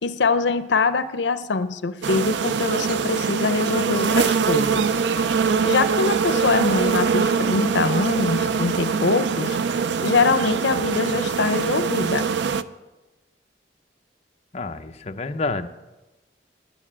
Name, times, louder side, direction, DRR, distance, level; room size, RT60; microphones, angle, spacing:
voice 1, 0.0-4.9 5.6-9.6 10.0-12.3, left 4 dB, 80° left, 12 dB, 0.6 m, -23 dB
sound 1, 2.0-12.6, right 5 dB, 75° right, 0.5 m, -23 dB
voice 2, 14.5-15.7, left 3 dB, 40° left, 6 dB, 0.7 m, -28 dB
12.0 x 9.0 x 7.4 m, 1.1 s
head